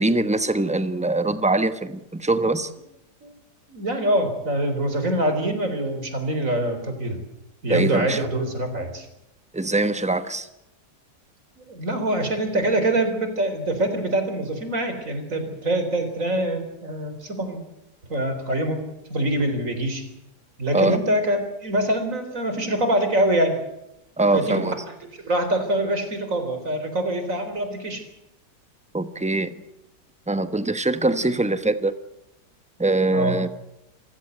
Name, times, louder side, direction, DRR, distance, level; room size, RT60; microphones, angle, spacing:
voice 1, 0.0-2.7 7.7-8.2 9.5-10.5 20.7-21.0 24.2-24.7 28.9-29.6 30.3-31.9 32.8-33.5, right 2 dB, 5° right, 11 dB, 0.9 m, -22 dB
voice 2, 3.7-7.2 7.6-9.1 11.7-17.6 18.1-18.8 19.1-20.0 20.6-23.6 24.3-24.7 25.2-28.0 33.1-33.3, right 1 dB, 50° right, 8 dB, 4.3 m, -24 dB
28.0 x 16.0 x 8.0 m, 0.86 s
omnidirectional pair, 1.8 m